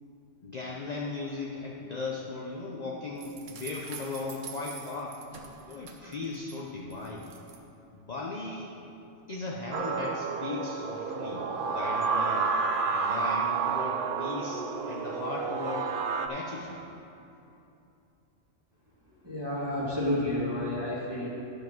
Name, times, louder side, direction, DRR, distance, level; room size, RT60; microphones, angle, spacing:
voice 1, 0.4-5.2 5.7-7.3 7.9-8.7 9.3-12.5 12.9-16.0 16.3-16.8, left 3 dB, 40° left, -3 dB, 0.8 m, -37 dB
sound 1, 3.2-6.6 6.9-7.6, right 5 dB, 80° right, 1.3 m, -46 dB
sound 2, 9.7-16.3, right 5 dB, 55° right, 0.6 m, -30 dB
voice 2, 19.2-21.3, left 1 dB, 20° right, -9 dB, 2.0 m, -30 dB
12.0 x 4.9 x 6.0 m, 2.8 s
omnidirectional pair, 1.3 m